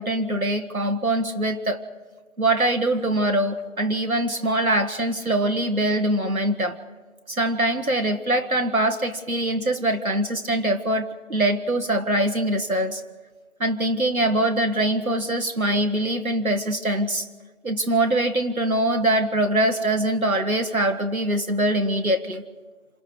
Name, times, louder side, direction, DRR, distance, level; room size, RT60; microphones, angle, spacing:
voice 1, 0.0-1.8 2.4-6.8 7.3-13.0 13.6-17.3 17.6-22.4, right 1 dB, 80° right, 5 dB, 1.5 m, -23 dB
28.0 x 26.5 x 4.9 m, 1.4 s
figure-of-eight pair, 175°, 41 cm